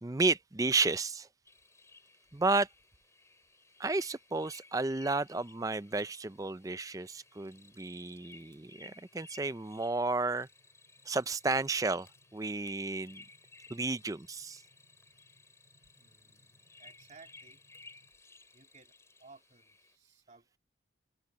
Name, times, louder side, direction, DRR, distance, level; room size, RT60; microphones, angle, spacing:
voice 1, 0.0-1.3 2.3-2.7 3.8-10.5 11.1-12.1 12.3-13.2 13.7-14.6, right 3 dB, 15° right, 0.4 m, -32 dB
sound 1, 1.5-20.0, left 3 dB, 15° left, 6.3 m, -58 dB
sound 2, 6.7-18.1, equal, 70° left, 7.8 m, -74 dB
voice 2, 16.0-17.6 18.5-20.6, right 4 dB, 40° right, 3.2 m, -59 dB
open air
head